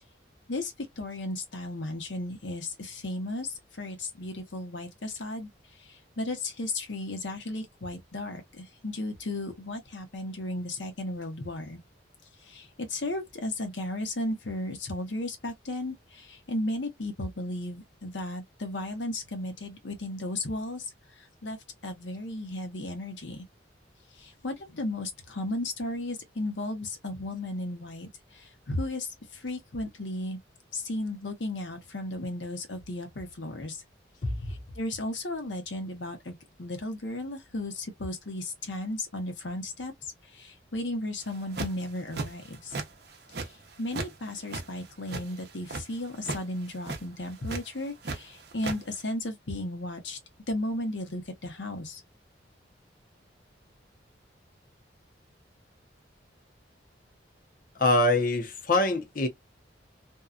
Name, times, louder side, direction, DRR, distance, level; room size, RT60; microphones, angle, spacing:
voice 1, 0.5-5.5 5.7-11.8 12.4-20.9 21.2-21.6 21.8-23.4 24.2-30.4 30.7-33.8 34.5-42.8 43.3-50.2 50.5-52.0, left 1 dB, 75° left, 1.0 m, -35 dB
voice 2, 34.2-34.5 57.8-59.3, left 2 dB, 50° left, 0.7 m, -24 dB
sound 1, 41.3-41.8 42.1-42.9 43.1-44.1 44.4-45.8 46.2-46.4 46.7-47.0 47.5-48.2 48.4-48.8, right 3 dB, 60° right, 0.7 m, -34 dB
2.7 x 2.3 x 2.4 m
head